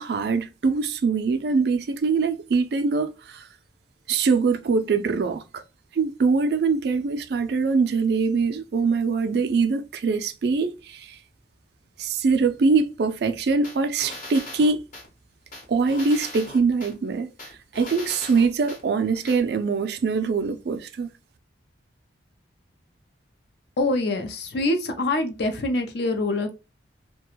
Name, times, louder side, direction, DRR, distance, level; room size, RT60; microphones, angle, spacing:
voice 1, 0.0-3.5 4.1-5.6 5.9-11.2 12.0-14.9 15.7-17.3 17.7-21.1, right 4 dB, 60° right, 0.3 m, -23 dB
sound 1, 13.6-15.1 15.5-16.9 17.4-18.8 19.3-19.4, left 1 dB, 45° left, 0.9 m, -39 dB
voice 2, 23.8-26.5, left 2 dB, 60° left, 0.5 m, -25 dB
2.4 x 2.2 x 2.9 m
head